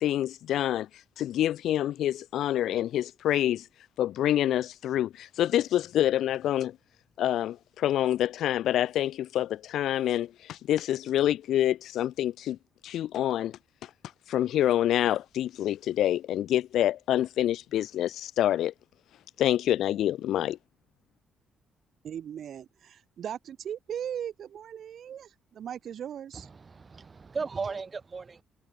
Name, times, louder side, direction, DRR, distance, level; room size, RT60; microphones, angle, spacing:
voice 1, 0.0-0.9 1.2-3.6 4.0-6.8 7.2-12.6 12.8-13.6 14.3-18.7 19.4-20.6, left 12 dB, 75° left, 0.7 m, -27 dB
voice 2, 22.0-26.5, right 9 dB, 65° right, 7.9 m, -38 dB
voice 3, 26.3-28.4, right 4 dB, 35° right, 3.6 m, -36 dB
cardioid pair, 90°, 0 cm